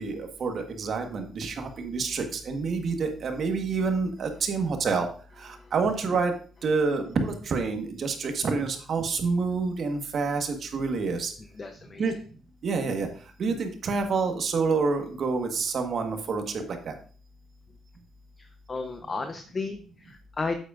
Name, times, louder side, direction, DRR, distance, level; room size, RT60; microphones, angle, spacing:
voice 1, 0.0-5.1 5.4-6.3 6.6-11.3 12.0-12.1 12.6-13.1 13.4-16.9, right 4 dB, 55° right, 5 dB, 1.4 m, -28 dB
voice 2, 11.6-12.1 18.4-20.5, left 3 dB, 35° left, 7 dB, 0.8 m, -34 dB
8.2 x 8.0 x 2.5 m, 0.42 s
cardioid pair, 90°, 0 cm